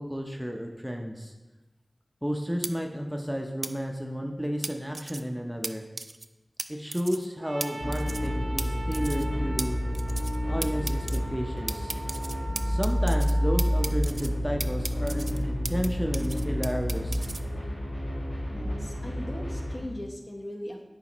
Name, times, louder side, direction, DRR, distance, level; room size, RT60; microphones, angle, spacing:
voice 1, 0.0-1.3 2.2-5.8 6.7-9.8 10.5-11.9 12.6-17.2, equal, 5° right, 2 dB, 0.6 m, -32 dB
sound 1, 2.6-2.7 3.6-3.7 4.6-5.2 5.6-5.7 6.0-6.3 6.6-6.7 6.9-7.3 7.6-7.7 7.9-8.3 8.6-8.7 8.9-9.3 9.6-9.7 9.9-10.4 10.6-11.2 11.7-13.3 13.6-14.3 14.6-15.9 16.1-17.4, right 2 dB, 60° right, 0.3 m, -35 dB
Trumpet, 7.4-14.0, right 2 dB, 85° right, 0.8 m, -41 dB
sound 2, 7.8-19.8, equal, 85° left, 1.6 m, -29 dB
voice 2, 18.5-20.9, left 1 dB, 40° left, 0 dB, 1.0 m, -39 dB
9.8 x 4.2 x 3.0 m, 1.1 s
wide cardioid pair, 55°, 0 cm